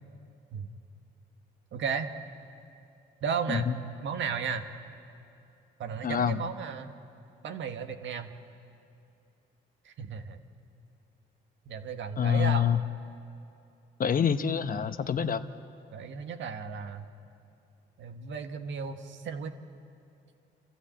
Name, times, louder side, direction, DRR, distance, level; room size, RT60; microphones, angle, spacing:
voice 1, 1.7-2.1 3.2-3.7 4.0-4.6 5.8-6.9 7.4-8.3 9.8-10.4 11.6-12.8 15.9-17.1 18.0-19.5, right 6 dB, 70° right, 7 dB, 1.5 m, -34 dB
voice 2, 6.0-6.4 12.2-12.8 14.0-15.4, left 8 dB, 45° left, 10 dB, 0.9 m, -26 dB
29.5 x 13.5 x 8.7 m, 2.6 s
cardioid pair, 90°, 20 cm